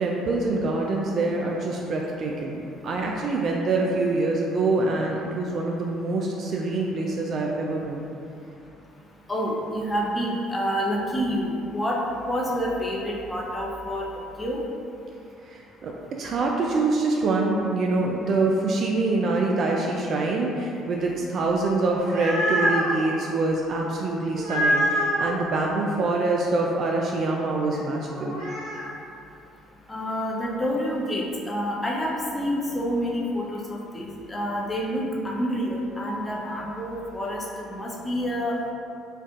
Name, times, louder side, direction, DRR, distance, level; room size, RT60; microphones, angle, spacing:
voice 1, 0.0-8.0 15.4-28.4, right 3 dB, 55° right, -1 dB, 0.3 m, -25 dB
voice 2, 9.3-12.0 12.2-14.1 14.4-14.6 29.9-38.7, equal, 20° left, -3 dB, 0.7 m, -28 dB
sound 1, 21.8-22.9 24.4-25.3 28.1-28.9, equal, 75° right, 1.1 m, -25 dB
4.4 x 2.5 x 2.4 m, 2.6 s
hypercardioid pair, 65°, 0 cm